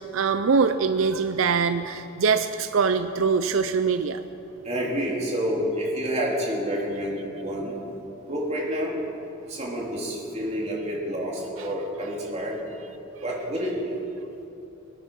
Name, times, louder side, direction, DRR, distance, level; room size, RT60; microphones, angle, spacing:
voice 1, 0.0-4.2, right 5 dB, 85° right, 10 dB, 0.5 m, -23 dB
voice 2, 4.6-7.7 8.3-8.9 9.5-12.5 13.2-13.9, equal, 35° right, -4 dB, 3.3 m, -28 dB
24.5 x 9.3 x 5.6 m, 3.0 s
head